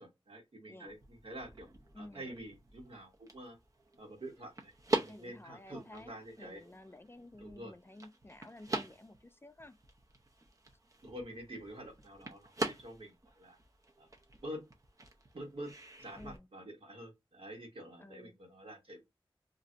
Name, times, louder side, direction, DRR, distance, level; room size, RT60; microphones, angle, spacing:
voice 1, 0.0-1.7 2.0-3.6 4.0-6.6 7.4-7.8 11.0-13.6 14.0-14.1 14.4-14.7 15.3-19.0, right 1 dB, 80° right, 1.3 m, -47 dB
voice 2, 0.7-1.0 1.9-2.2 5.1-9.8 16.2-16.5 18.0-18.4, left 1 dB, 25° left, 0.3 m, -53 dB
sound 1, 0.9-16.4, right 2 dB, 40° right, 0.6 m, -43 dB
2.5 x 2.1 x 3.8 m
wide cardioid pair, 70°, 9 cm